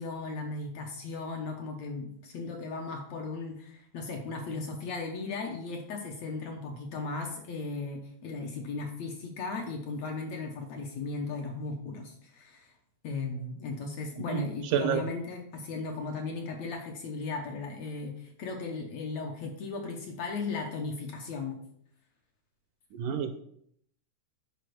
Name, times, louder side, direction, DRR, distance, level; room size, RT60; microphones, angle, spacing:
voice 1, 0.0-12.7 13.0-21.6, left 3 dB, 65° left, 2 dB, 1.9 m, -36 dB
voice 2, 14.7-15.1 22.9-23.4, right 8 dB, 80° right, 8 dB, 2.2 m, -28 dB
8.5 x 4.9 x 6.1 m, 0.68 s
omnidirectional pair, 3.9 m